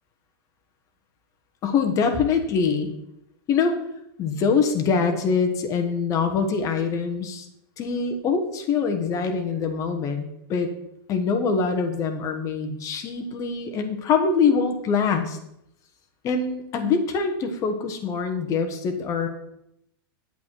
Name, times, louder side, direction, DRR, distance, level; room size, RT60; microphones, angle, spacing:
voice 1, 1.6-2.9 3.5-3.8 4.2-7.4 7.8-10.7 11.1-15.4 16.2-19.3, left 5 dB, 25° left, 5 dB, 1.2 m, -24 dB
8.5 x 8.2 x 4.6 m, 0.79 s
supercardioid pair, 155°, 12 cm